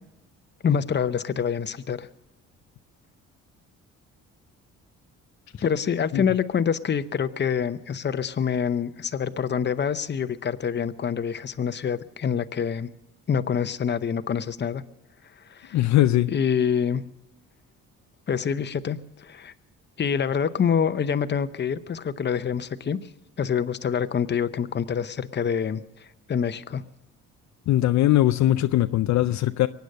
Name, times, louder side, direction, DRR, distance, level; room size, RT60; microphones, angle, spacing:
voice 1, 0.6-2.1 5.6-12.9 13.3-14.8 15.5-15.8 16.3-17.1 18.3-19.5 20.0-23.0 23.4-25.8 26.3-26.8, left 7 dB, 35° left, 0.8 m, -26 dB
voice 2, 15.7-16.3 27.7-29.7, left 14 dB, 65° left, 0.5 m, -20 dB
23.0 x 9.3 x 6.5 m
cardioid pair, 90°, 30 cm